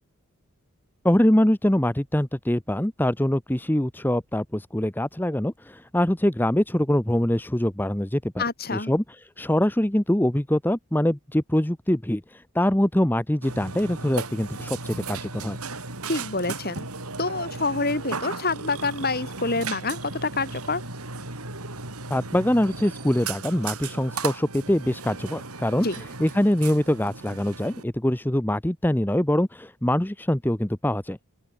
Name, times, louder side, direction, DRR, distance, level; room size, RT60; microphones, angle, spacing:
voice 1, 1.0-8.4 8.7-15.6 22.1-31.3, left 1 dB, 10° left, 0.8 m, -24 dB
voice 2, 8.4-8.9 16.1-16.9 17.2-20.8 25.8-26.0, left 3 dB, 45° left, 5.5 m, -27 dB
Burping eructation, 13.4-27.8, right 4 dB, 80° right, 6.0 m, -36 dB
open air
head